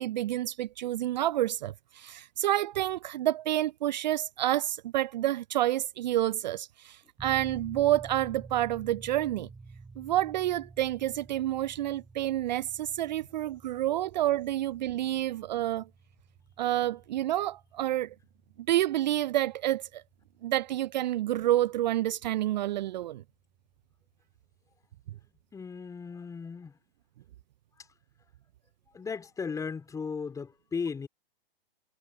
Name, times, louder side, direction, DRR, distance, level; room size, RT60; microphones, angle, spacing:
voice 1, 0.0-9.5 10.0-15.9 16.6-18.1 18.7-20.0 20.4-23.2, right 13 dB, 45° right, 0.7 m, -29 dB
sound 1, 7.2-21.6, right 4 dB, 10° right, 4.0 m, -51 dB
voice 2, 25.5-26.8 27.8-27.9 28.9-31.1, left 5 dB, 10° left, 3.9 m, -36 dB
figure-of-eight pair, 120°, 30 cm